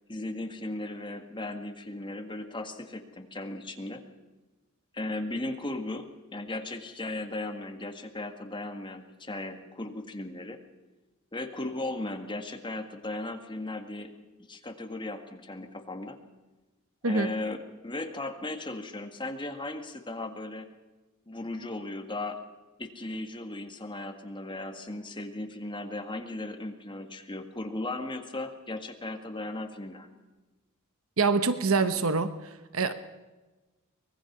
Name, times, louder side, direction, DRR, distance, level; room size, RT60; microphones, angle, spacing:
voice 1, 0.1-4.0 4.9-10.6 11.3-14.1 14.5-16.2 17.0-20.7 21.3-22.4 22.8-30.1, left 2 dB, 20° left, 5 dB, 1.7 m, -36 dB
voice 2, 31.2-32.9, right 4 dB, 70° right, 11 dB, 1.0 m, -26 dB
24.0 x 19.5 x 5.9 m, 1.2 s
head